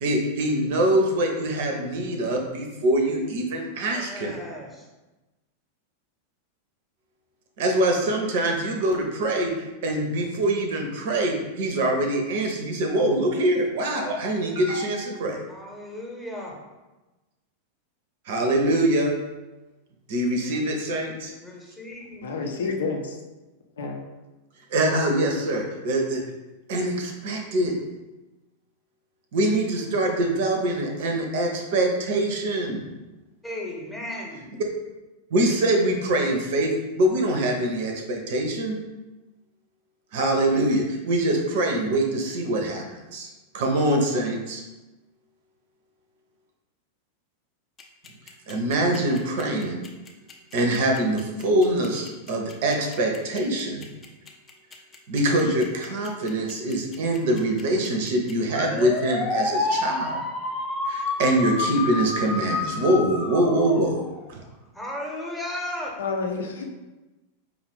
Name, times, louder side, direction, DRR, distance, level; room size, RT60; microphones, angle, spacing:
voice 1, 0.0-4.4 7.6-15.4 18.3-19.1 20.1-21.3 24.7-26.2 26.7-27.7 29.3-32.8 35.3-38.8 40.1-44.6 48.5-49.8 50.5-53.9 55.1-60.2 60.9-64.0 64.3-64.4, right 1 dB, 50° right, 3 dB, 0.6 m, -24 dB
voice 2, 3.9-4.8 15.5-16.5 21.4-22.3 33.4-34.5 64.7-65.9, left 1 dB, ahead, -3 dB, 0.9 m, -35 dB
voice 3, 22.2-23.2 23.8-24.0 66.0-66.6, left 4 dB, 65° left, 1 dB, 0.6 m, -29 dB
sound 1, 47.8-64.2, left 3 dB, 25° left, 0.6 m, -29 dB
5.0 x 2.5 x 3.4 m, 1.1 s
figure-of-eight pair, 90°, 0 cm